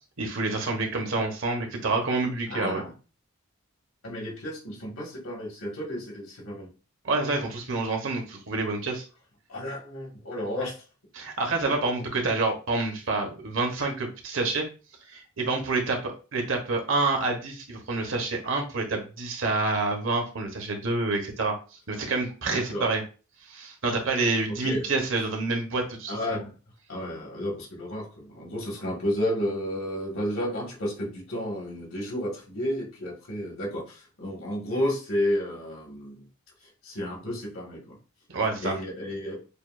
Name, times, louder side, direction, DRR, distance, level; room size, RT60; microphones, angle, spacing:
voice 1, 0.2-2.8 7.0-9.0 11.1-14.7 15.1-21.5 21.9-23.0 23.5-26.4 38.3-38.7, right 3 dB, 65° right, 2 dB, 1.0 m, -28 dB
voice 2, 2.5-2.9 4.0-6.7 9.5-10.7 22.5-22.9 24.5-24.9 26.1-26.5 26.9-36.3 36.8-38.0 38.6-39.4, equal, 75° left, -2 dB, 1.8 m, -32 dB
6.8 x 2.4 x 2.5 m, 0.35 s
head